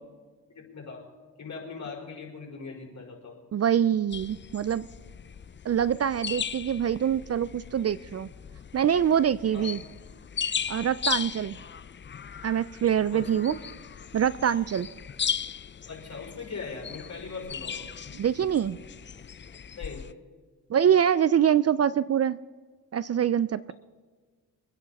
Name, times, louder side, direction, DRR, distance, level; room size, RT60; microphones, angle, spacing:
voice 1, 0.5-1.0 1.4-3.4 9.5-9.7 13.1-13.4 15.9-17.9 19.8-20.0, left 4 dB, 50° left, -1 dB, 4.6 m, -40 dB
voice 2, 3.5-4.9 5.6-8.3 8.7-9.8 10.7-11.6 12.4-13.6 14.1-14.9 18.2-18.8 20.7-22.4 22.9-23.7, right 9 dB, 45° right, 17 dB, 0.4 m, -24 dB
sound 1, 4.1-20.1, left 7 dB, 30° left, 0.5 m, -37 dB
24.5 x 9.6 x 4.1 m, 1.4 s
cardioid pair, 75°, 36 cm